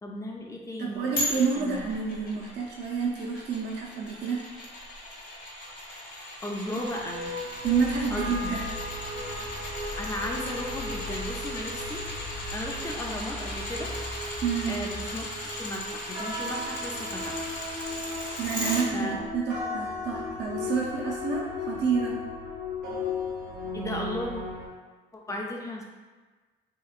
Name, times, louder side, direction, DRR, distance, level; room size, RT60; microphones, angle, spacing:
voice 1, 0.0-1.9 2.3-2.5 6.2-7.3 8.1-8.5 9.2-9.4 10.0-12.1 12.4-13.9 14.6-17.5 18.9-19.2 23.7-24.4 25.1-25.8, left 1 dB, 15° left, 0 dB, 0.5 m, -36 dB
voice 2, 0.8-4.4 6.7-6.8 7.6-8.6 14.4-14.8 18.4-22.2, right 5 dB, 60° right, -2 dB, 0.5 m, -29 dB
sound 1, 1.2-18.8 19.3-19.4, left 1 dB, 55° left, 1.0 m, -37 dB
sound 2, 6.8-24.7, left 2 dB, 90° right, 1.3 m, -37 dB
sound 3, 7.6-15.4, left 2 dB, 75° left, 0.7 m, -41 dB
2.9 x 2.8 x 2.4 m, 1.3 s
cardioid pair, 90°, 20 cm